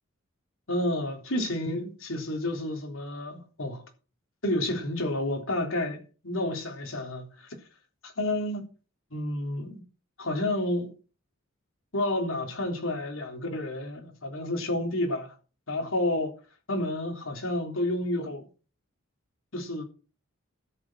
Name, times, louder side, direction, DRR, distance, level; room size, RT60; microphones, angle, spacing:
voice 1, 0.7-3.8 4.4-7.5 8.0-8.7 9.1-9.8 10.2-10.9 11.9-15.3 15.7-16.3 16.7-18.5 19.5-19.8, left 1 dB, 80° left, 3.5 m, -30 dB
13.5 x 7.8 x 6.2 m
head